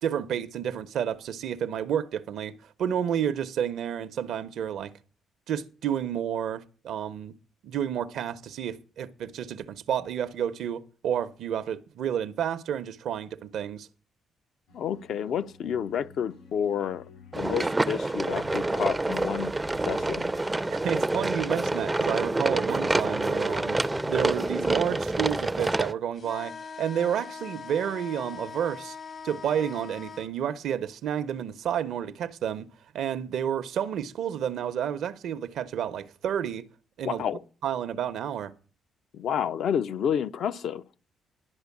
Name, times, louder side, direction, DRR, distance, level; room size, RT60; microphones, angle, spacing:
voice 1, 0.0-2.5 2.8-4.9 5.5-7.4 7.6-13.9 20.7-23.8 24.1-29.0 29.2-32.7 32.9-36.7 37.0-37.2 37.6-38.5, right 9 dB, 75° right, 0.7 m, -30 dB
sound 1, 14.7-25.9, left 6 dB, 85° left, 4.5 m, -52 dB
voice 2, 14.7-17.0 17.3-19.5 19.9-20.2 37.0-37.4 39.1-40.8, left 8 dB, 70° left, 0.5 m, -29 dB
sound 2, 17.3-25.9, right 2 dB, 15° right, 0.4 m, -27 dB
sound 3, 26.2-30.3, left 5 dB, 50° left, 0.9 m, -41 dB
11.5 x 5.2 x 8.3 m
cardioid pair, 90°, 0 cm